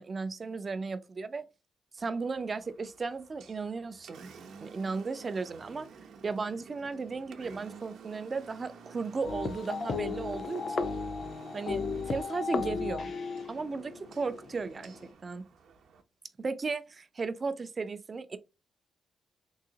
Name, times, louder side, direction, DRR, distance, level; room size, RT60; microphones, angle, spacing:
voice 1, 0.0-1.4 1.9-4.3 4.6-5.9 6.2-10.9 11.5-13.1 13.5-14.9 15.2-15.4 16.4-18.4, right 4 dB, 25° right, 0.3 m, -35 dB
Engine, 2.0-16.0, right 6 dB, 70° right, 0.7 m, -52 dB
sound 1, 9.2-15.1, left 4 dB, 40° left, 0.4 m, -35 dB
3.8 x 2.8 x 2.7 m
wide cardioid pair, 180°, 0 cm